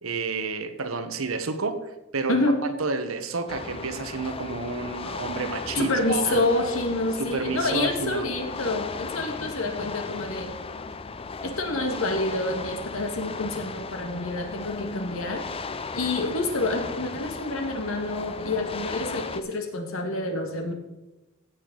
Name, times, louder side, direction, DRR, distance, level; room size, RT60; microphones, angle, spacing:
voice 1, 0.0-6.4 7.2-8.3, right 3 dB, 90° right, 9 dB, 1.1 m, -30 dB
voice 2, 2.3-2.6 5.7-10.6 11.4-15.5 15.9-20.7, left 2 dB, 80° left, 5 dB, 1.8 m, -28 dB
sound 1, 3.5-19.4, left 4 dB, 25° left, 0.5 m, -36 dB
16.5 x 6.7 x 3.9 m, 1.0 s
head